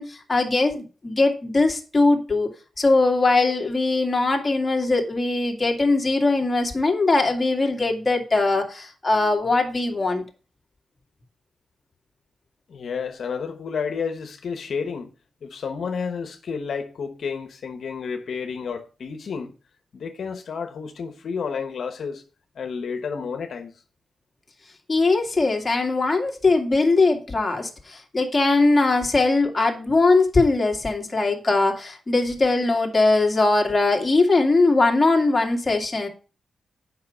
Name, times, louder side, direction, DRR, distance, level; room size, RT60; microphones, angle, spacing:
voice 1, 0.0-2.5 2.8-10.2 24.9-36.1, left 3 dB, 25° left, 2.2 m, -21 dB
voice 2, 12.7-15.1 15.4-19.5 19.9-22.2 22.5-23.7, left 6 dB, 75° left, 1.0 m, -31 dB
8.5 x 5.7 x 5.5 m
cardioid pair, 90°, 0 cm